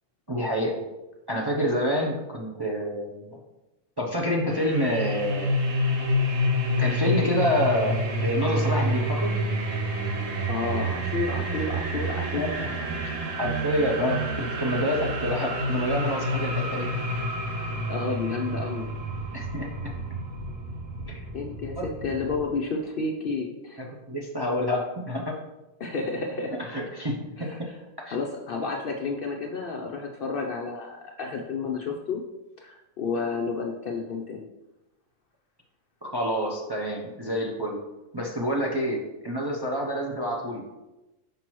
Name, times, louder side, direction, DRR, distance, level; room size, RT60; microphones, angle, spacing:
voice 1, 0.3-0.8 1.3-3.4 4.0-5.5 6.8-9.4 12.4-12.7 13.0-17.0 19.3-19.9 21.1-21.2 21.8-21.9 23.8-25.4 26.6-27.5 28.1-28.2 36.0-37.8 38.1-40.6, equal, 25° right, -2 dB, 0.5 m, -28 dB
sound 1, 4.5-22.4, equal, 75° right, 1.1 m, -28 dB
voice 2, 10.3-12.7 17.9-19.0 21.3-23.8 25.8-26.6 27.4-27.7 28.0-32.2 32.6-34.5, left 4 dB, 60° left, 2 dB, 0.6 m, -31 dB
5.9 x 5.3 x 3.0 m, 1.0 s
omnidirectional pair, 1.3 m